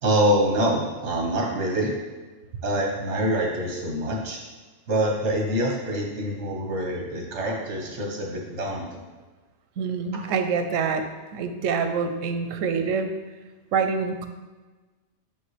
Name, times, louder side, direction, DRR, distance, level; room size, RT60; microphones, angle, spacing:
voice 1, 0.0-1.9 2.6-4.4 4.9-9.0, right 1 dB, 65° right, -1 dB, 1.4 m, -25 dB
voice 2, 9.8-11.0 11.3-13.1 13.7-14.3, right 5 dB, 90° right, 7 dB, 1.0 m, -26 dB
5.5 x 5.3 x 3.2 m, 1.3 s
omnidirectional pair, 1.3 m